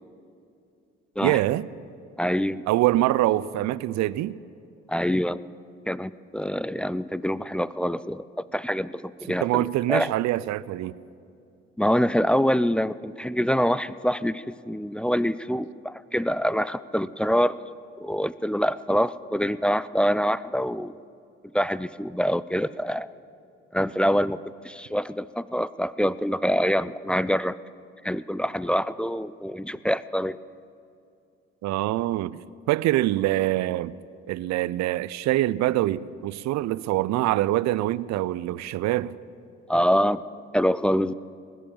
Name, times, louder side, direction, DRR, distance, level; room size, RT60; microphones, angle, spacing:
voice 1, 1.2-1.7 2.7-4.4 9.3-11.0 31.6-32.4 32.7-33.9 34.3-39.2, right 15 dB, 55° right, 0.5 m, -24 dB
voice 2, 2.2-2.6 4.9-5.4 5.9-10.1 11.8-17.6 18.0-21.0 21.5-23.1 23.7-27.6 28.0-30.4 39.7-40.2 40.5-41.1, equal, 5° left, 0.3 m, -25 dB
19.5 x 9.9 x 7.3 m
hypercardioid pair, 45°, 34 cm